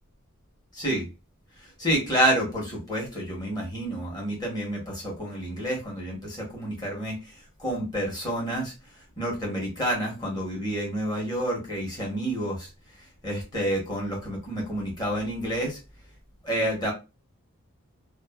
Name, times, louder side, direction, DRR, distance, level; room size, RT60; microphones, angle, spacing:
voice 1, 0.7-1.1 1.6-12.7 13.0-15.8 16.4-16.9, right 1 dB, 20° left, -1 dB, 1.0 m, -29 dB
2.4 x 2.4 x 2.3 m, 0.27 s
head